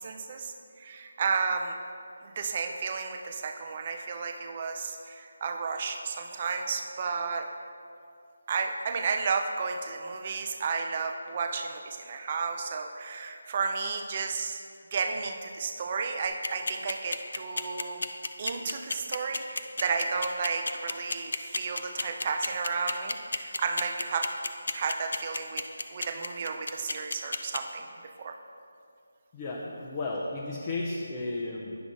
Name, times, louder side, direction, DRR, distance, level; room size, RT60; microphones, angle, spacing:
voice 1, 0.0-1.8 2.2-7.5 8.5-14.6 14.9-18.0 18.4-24.3 24.7-25.6 25.9-27.9 28.2-28.4, right 5 dB, 30° right, 5 dB, 0.5 m, -32 dB
sound 1, 16.2-27.6, left 3 dB, 70° left, 0.5 m, -31 dB
voice 2, 29.3-31.8, left 2 dB, 20° left, -3 dB, 0.6 m, -33 dB
9.5 x 4.1 x 5.9 m, 2.4 s
figure-of-eight pair, 170°, 0 cm